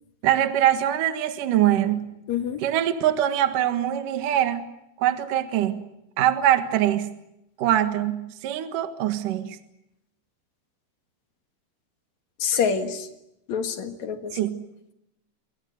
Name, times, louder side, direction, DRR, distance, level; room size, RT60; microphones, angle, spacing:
voice 1, 0.2-2.1 2.6-4.7 5.0-5.8 6.2-7.2 7.6-9.6 14.3-14.6, right 11 dB, 60° right, 7 dB, 2.3 m, -23 dB
voice 2, 2.3-2.6 12.4-13.1 13.5-14.3, left 6 dB, 60° left, 6 dB, 1.9 m, -26 dB
29.5 x 24.0 x 8.2 m, 0.86 s
omnidirectional pair, 5.9 m